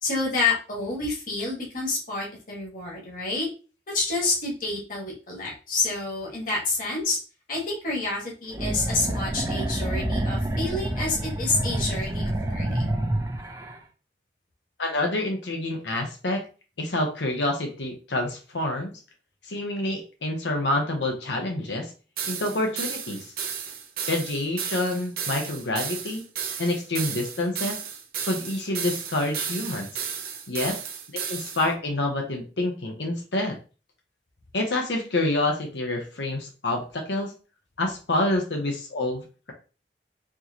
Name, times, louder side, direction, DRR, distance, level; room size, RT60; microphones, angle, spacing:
voice 1, 0.0-3.5 3.9-7.2 7.5-12.9, left 3 dB, 50° left, -2 dB, 1.5 m, -28 dB
sound 1, 8.5-13.8, right 1 dB, 20° right, 0.5 m, -28 dB
voice 2, 14.8-16.4 16.8-18.9 19.4-21.9 22.2-23.3 24.1-26.2 26.6-27.8 28.2-29.9 30.5-30.8 31.3-33.6 34.5-37.3 37.8-39.5, left 2 dB, 90° left, 2 dB, 0.9 m, -27 dB
sound 2, 22.2-31.7, right 7 dB, 55° right, 0.7 m, -33 dB
4.5 x 3.1 x 2.8 m, 0.35 s
head